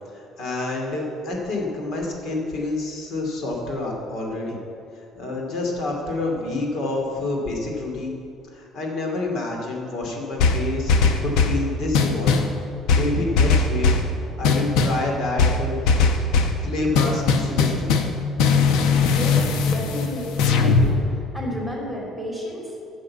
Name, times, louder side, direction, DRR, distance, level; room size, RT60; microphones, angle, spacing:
voice 1, 0.1-4.6 5.0-8.1 8.5-12.4 12.9-13.9 14.4-15.8 16.1-16.3 16.6-17.9, left 2 dB, 55° left, 0 dB, 2.4 m, -28 dB
sound 1, 10.4-11.6 11.9-12.5 12.9-14.1 14.4-15.0 15.4-16.6 16.9-18.1 18.4-20.9, left 4 dB, 80° left, 1.0 m, -19 dB
voice 2, 19.0-20.9 21.3-22.6, equal, 5° left, -2 dB, 2.7 m, -31 dB
11.0 x 6.6 x 8.4 m, 2.6 s
cardioid pair, 160°, 0 cm